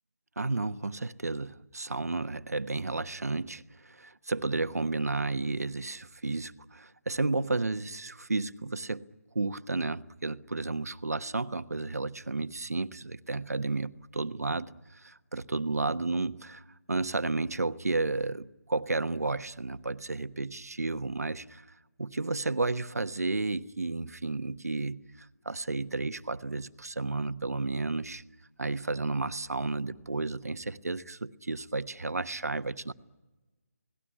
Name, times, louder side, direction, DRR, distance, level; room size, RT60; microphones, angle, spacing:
voice 1, 0.4-9.1 9.3-21.6 22.0-28.2 28.6-32.9, right 3 dB, 75° right, 1.2 m, -32 dB
29.5 x 18.5 x 10.0 m
figure-of-eight pair, 160°, 8 cm